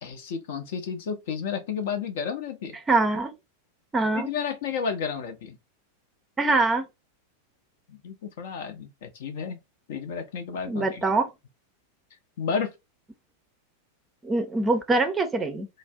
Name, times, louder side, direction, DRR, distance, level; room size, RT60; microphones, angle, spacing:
voice 1, 0.0-2.8 4.1-5.6 7.9-9.6 9.9-11.2 12.4-12.7, left 6 dB, 55° left, 0.7 m, -32 dB
voice 2, 2.9-3.3 3.9-4.3 6.4-6.9 10.7-11.3 14.2-15.7, right 3 dB, 15° right, 0.5 m, -23 dB
2.5 x 2.0 x 3.4 m
figure-of-eight pair, 90°, 0 cm